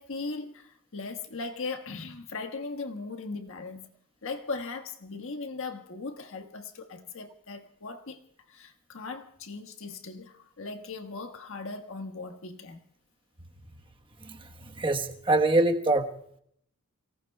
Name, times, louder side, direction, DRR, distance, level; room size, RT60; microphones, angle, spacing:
voice 1, 0.0-3.9 4.2-8.2 8.5-12.8, left 3 dB, 65° left, 1.5 m, -38 dB
voice 2, 14.2-16.1, right 2 dB, 25° right, 1.2 m, -25 dB
29.0 x 18.5 x 2.3 m
head